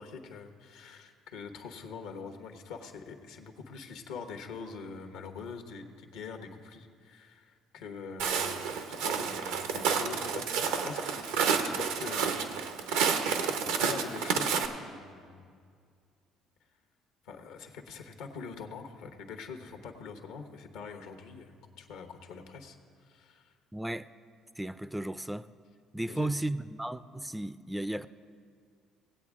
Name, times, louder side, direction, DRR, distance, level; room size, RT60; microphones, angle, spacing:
voice 1, 0.0-12.9 13.6-15.6 17.2-22.8 23.0-23.5 26.1-26.3, left 5 dB, 80° left, 1.0 m, -44 dB
Walk footsteps, 8.2-14.7, right 6 dB, 85° right, 0.7 m, -30 dB
voice 2, 23.7-24.1 24.6-25.5 25.9-28.1, right 1 dB, 5° right, 0.4 m, -34 dB
18.5 x 8.2 x 3.6 m
supercardioid pair, 70°, 0 cm